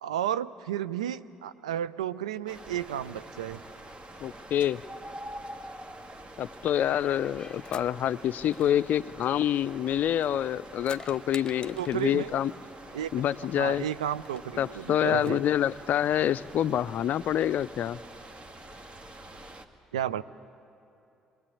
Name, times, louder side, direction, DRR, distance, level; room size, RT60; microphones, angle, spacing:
voice 1, 0.0-3.6 11.7-12.3 12.9-13.1 13.6-15.4 19.9-20.2, right 10 dB, 85° right, 16 dB, 0.5 m, -32 dB
sound 1, 2.5-19.7, right 1 dB, 35° right, 1.9 m, -46 dB
voice 2, 4.2-4.8 6.4-12.5 13.1-13.9 14.6-18.0, left 10 dB, 55° left, 16 dB, 0.5 m, -27 dB
sound 2, 6.7-7.9 8.5-10.2 10.5-12.2 13.3-13.4 13.6-13.7 14.1-14.4 15.1-16.5, left 4 dB, 25° left, 1.1 m, -49 dB
23.0 x 20.5 x 8.5 m, 2.7 s
hypercardioid pair, 50°, 3 cm